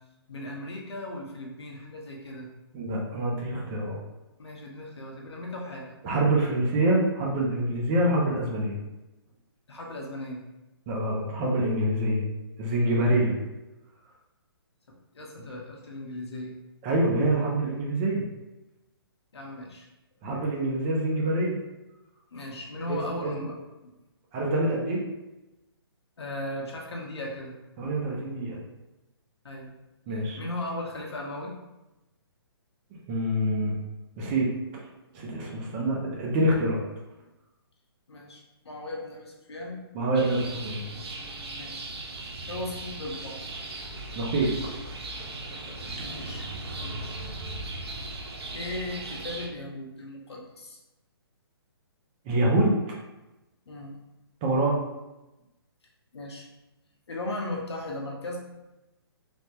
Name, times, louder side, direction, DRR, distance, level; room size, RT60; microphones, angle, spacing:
voice 1, 0.3-2.5 4.4-5.9 9.7-10.4 15.1-16.5 19.3-19.9 22.3-23.6 23.8-23.9 26.2-27.5 29.4-29.7 30.4-31.5 38.1-39.8 41.6-41.9 42.5-43.4 46.0-46.5 46.8-47.0 48.5-50.8 53.7-54.0 56.1-56.5 57.1-58.4, left 1 dB, 90° left, -1 dB, 0.8 m, -37 dB
voice 2, 2.7-4.0 6.0-8.8 10.9-12.2 12.6-13.4 16.8-18.2 20.2-21.6 22.9-23.3 24.3-25.0 27.8-28.6 30.1-30.4 33.1-33.7 34.2-34.5 35.1-36.8 39.9-40.8 44.2-44.5 45.5-45.6 52.3-52.7 54.4-54.8, right 1 dB, 20° right, -2 dB, 0.4 m, -25 dB
sound 1, 40.1-49.5, right 2 dB, 75° right, 0.6 m, -38 dB
3.3 x 2.1 x 2.8 m, 1.0 s
hypercardioid pair, 155°, 13 cm